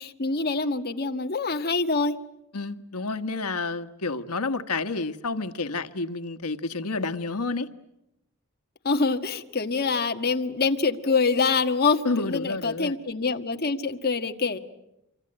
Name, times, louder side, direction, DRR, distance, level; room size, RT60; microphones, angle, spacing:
voice 1, 0.0-2.2 8.8-14.6, left 4 dB, 45° left, 6 dB, 1.6 m, -25 dB
voice 2, 2.5-7.7 12.0-13.0, left 3 dB, 90° left, 11 dB, 1.4 m, -30 dB
26.5 x 25.0 x 8.9 m, 0.88 s
head